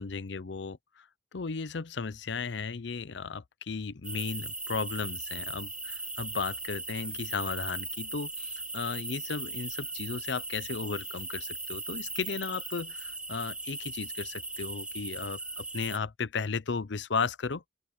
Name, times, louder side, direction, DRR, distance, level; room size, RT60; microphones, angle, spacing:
voice 1, 0.0-17.6, left 5 dB, 65° left, 0.6 m, -35 dB
sound 1, 4.0-16.0, right 3 dB, 5° right, 0.4 m, -38 dB
open air
head